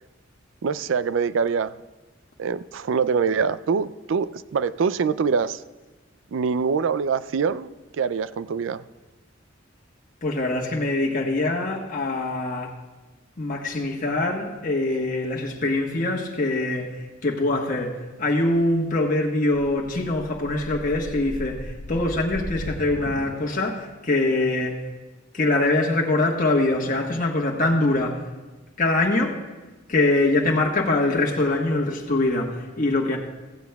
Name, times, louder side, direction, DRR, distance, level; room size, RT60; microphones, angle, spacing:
voice 1, 0.6-1.8 2.4-5.6 6.3-8.8, right 5 dB, 75° right, 0.4 m, -24 dB
voice 2, 10.2-12.8 13.4-24.8 25.3-28.3 28.8-29.4 29.9-33.2, left 2 dB, 45° left, 1.3 m, -23 dB
sound 1, 19.6-23.9, left 1 dB, 80° left, 0.9 m, -37 dB
15.5 x 15.5 x 2.3 m
head